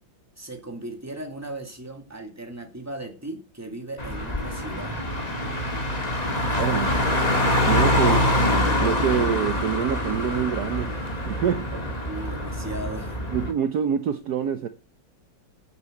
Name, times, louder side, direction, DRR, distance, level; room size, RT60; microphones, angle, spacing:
voice 1, 0.4-5.0 6.3-6.5 12.0-13.2, right 2 dB, 10° right, 2.3 m, -37 dB
Car, 4.0-13.5, left 1 dB, 20° left, 2.1 m, -25 dB
voice 2, 6.6-6.9 7.6-8.3 8.8-10.9 11.3-11.8 13.3-14.7, right 8 dB, 60° right, 1.3 m, -26 dB
9.6 x 8.1 x 7.8 m
omnidirectional pair, 2.1 m